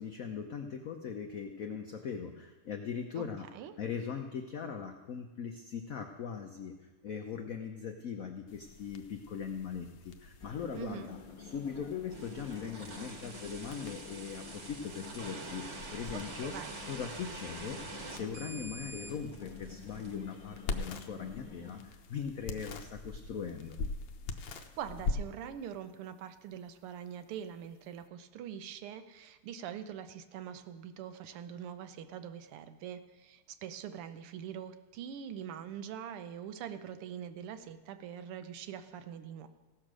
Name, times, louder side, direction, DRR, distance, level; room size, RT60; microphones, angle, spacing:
voice 1, 0.0-3.5 3.8-6.8 7.0-16.6 16.8-17.8 18.1-23.8, left 7 dB, 80° left, 4 dB, 0.7 m, -40 dB
sound 1, 8.5-28.1, left 3 dB, 65° left, 1.3 m, -44 dB
sound 2, 10.4-21.8, left 5 dB, 30° left, 1.4 m, -51 dB
voice 2, 10.7-11.1 16.1-16.7 24.4-39.5, right 9 dB, 80° right, 10 dB, 1.6 m, -43 dB
sound 3, 12.1-20.2, right 3 dB, 35° right, 1.4 m, -46 dB
16.0 x 6.7 x 6.1 m, 1.2 s
omnidirectional pair, 2.4 m